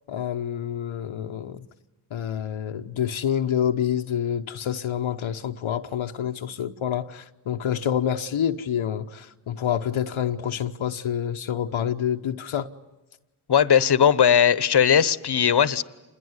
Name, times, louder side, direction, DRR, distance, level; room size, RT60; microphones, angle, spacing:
voice 1, 0.1-1.6 2.1-12.7, left 9 dB, 75° left, 1.0 m, -27 dB
voice 2, 13.5-15.8, left 8 dB, 55° left, 1.1 m, -18 dB
27.5 x 21.0 x 9.6 m
cardioid pair, 60°, 48 cm